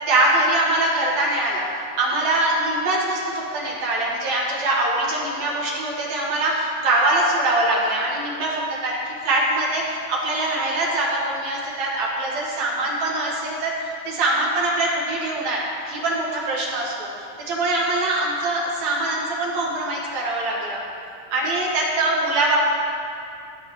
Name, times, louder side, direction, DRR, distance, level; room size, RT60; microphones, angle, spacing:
voice 1, 0.1-17.1 17.5-20.8 21.3-22.6, right 2 dB, 75° right, -3 dB, 2.8 m, -23 dB
22.5 x 7.5 x 3.1 m, 2.6 s
omnidirectional pair, 3.3 m